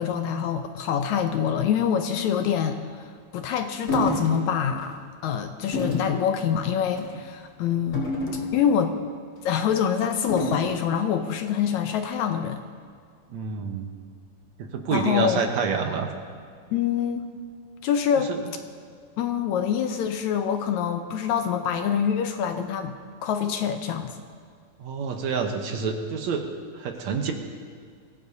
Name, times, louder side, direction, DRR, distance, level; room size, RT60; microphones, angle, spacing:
voice 1, 0.0-8.1 8.5-8.9 9.4-12.6 14.9-15.4 16.7-17.2 17.8-18.3 19.2-22.9 23.2-24.1, left 8 dB, 75° left, 6 dB, 1.9 m, -25 dB
sound 1, 3.9-4.3 4.8-5.0 5.7-6.1 6.9-7.2 7.9-8.8 10.3-10.8, left 1 dB, 30° left, 4.4 m, -29 dB
voice 2, 13.3-13.9 14.6-16.1 18.3-18.4 24.8-27.3, right 5 dB, 70° right, 4 dB, 2.1 m, -28 dB
23.5 x 16.0 x 2.7 m, 2.1 s
omnidirectional pair, 3.7 m